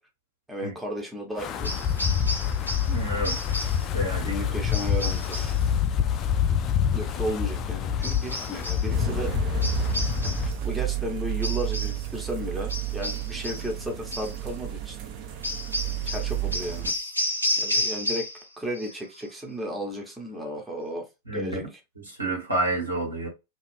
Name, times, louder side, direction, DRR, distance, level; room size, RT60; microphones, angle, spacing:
voice 1, 0.5-1.8 4.2-5.7 6.9-9.7 10.2-15.0 16.0-16.9 17.6-18.3 18.6-21.1 21.3-21.8, equal, 5° right, 0.9 m, -34 dB
Wind, 1.4-10.5, left 8 dB, 30° left, 0.4 m, -26 dB
sound 1, 1.6-3.0 3.2-3.9 4.7-5.6 8.0-8.9 9.6-10.5 11.4-12.0 12.7-13.7 14.1-14.4 15.4-18.5 18.7-19.2, left 1 dB, 85° left, 0.6 m, -32 dB
voice 2, 2.9-3.6 3.9-4.3 21.3-21.6 22.0-23.3, right 1 dB, 85° right, 1.4 m, -29 dB
sound 2, 8.9-16.9, right 11 dB, 45° right, 0.6 m, -31 dB
2.6 x 2.3 x 3.2 m
figure-of-eight pair, 90°, 0 cm